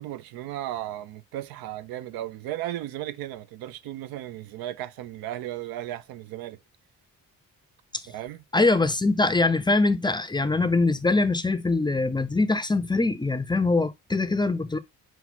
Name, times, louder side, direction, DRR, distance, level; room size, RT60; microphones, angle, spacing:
voice 1, 0.0-6.6 8.1-8.4, right 13 dB, 85° right, 0.5 m, -35 dB
voice 2, 8.5-14.8, left 3 dB, 15° left, 0.4 m, -23 dB
5.8 x 2.0 x 4.1 m
cardioid pair, 65°, 35 cm